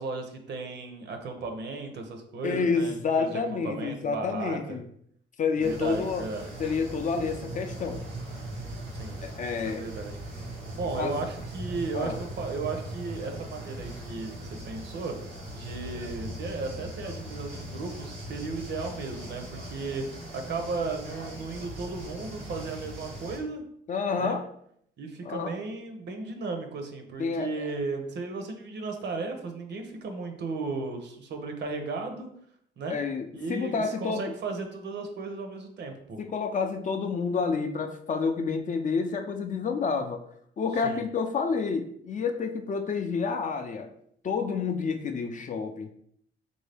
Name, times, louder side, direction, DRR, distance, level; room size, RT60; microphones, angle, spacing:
voice 1, 0.0-4.8 5.6-6.5 8.9-9.2 9.6-10.2 10.7-14.4 14.6-15.1 15.5-23.6 24.2-24.4 25.0-32.3 32.8-33.0 33.3-36.2 40.8-41.0, right 3 dB, 60° right, 5 dB, 0.7 m, -35 dB
voice 2, 2.4-4.9 5.4-6.3 6.6-8.0 9.2-9.9 11.0-11.2 11.9-12.2 23.9-24.5 25.2-25.6 27.2-27.7 32.9-34.3 36.2-40.2 40.6-43.9 44.2-45.9, left 5 dB, 40° left, 5 dB, 0.5 m, -29 dB
sound 1, 5.6-23.4, right 1 dB, 90° right, 1.3 m, -40 dB
3.7 x 2.6 x 3.4 m, 0.68 s
cardioid pair, 90°, 20 cm